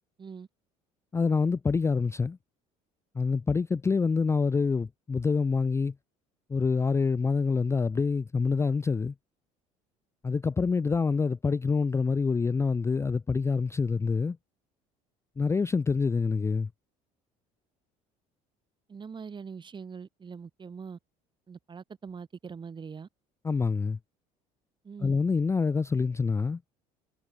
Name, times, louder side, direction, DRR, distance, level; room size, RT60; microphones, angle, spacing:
voice 1, 1.1-2.4 3.2-5.9 6.5-9.1 10.2-14.4 15.4-16.7 23.4-24.0 25.0-26.6, left 4 dB, 15° left, 0.4 m, -26 dB
voice 2, 18.9-21.0 21.5-23.1 24.8-25.2, right 6 dB, 30° right, 1.1 m, -42 dB
hypercardioid pair, 70°, 17 cm